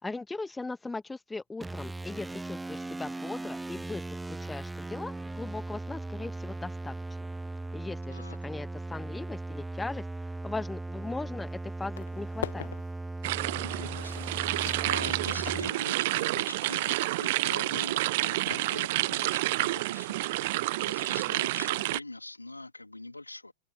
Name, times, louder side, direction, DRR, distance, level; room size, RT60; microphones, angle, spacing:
voice 1, 0.0-6.9 7.7-10.0 10.4-12.7, left 3 dB, 10° left, 2.1 m, -39 dB
sound 1, 1.6-15.7, right 2 dB, 5° right, 1.0 m, -38 dB
sound 2, 11.4-11.5 11.8-19.3, left 11 dB, 60° left, 1.0 m, -44 dB
sound 3, 13.2-22.0, right 19 dB, 50° right, 0.6 m, -29 dB
voice 2, 13.6-23.5, left 2 dB, 85° left, 2.9 m, -43 dB
open air
figure-of-eight pair, 90°, 0 cm